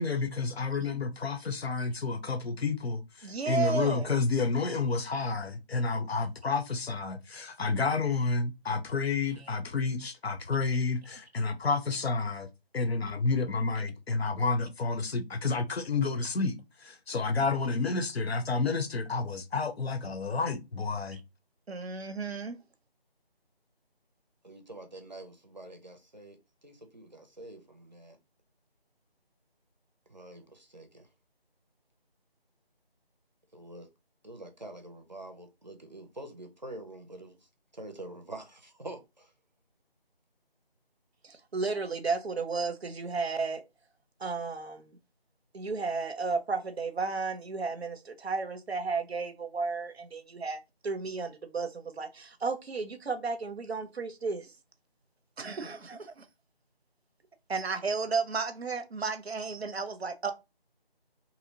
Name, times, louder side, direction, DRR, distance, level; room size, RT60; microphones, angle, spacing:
voice 1, 0.0-12.5 12.7-16.6 16.8-21.2, left 4 dB, 80° left, 0.6 m, -30 dB
voice 2, 3.2-4.1 21.7-22.6 41.2-43.6 44.2-45.0 45.5-54.5 55.4-56.3 57.5-60.3, right 4 dB, 90° right, 0.6 m, -33 dB
voice 3, 24.4-28.2 30.1-31.1 33.5-33.9 34.2-39.3, right 1 dB, 45° right, 0.5 m, -46 dB
2.7 x 2.0 x 2.7 m
figure-of-eight pair, 165°, 31 cm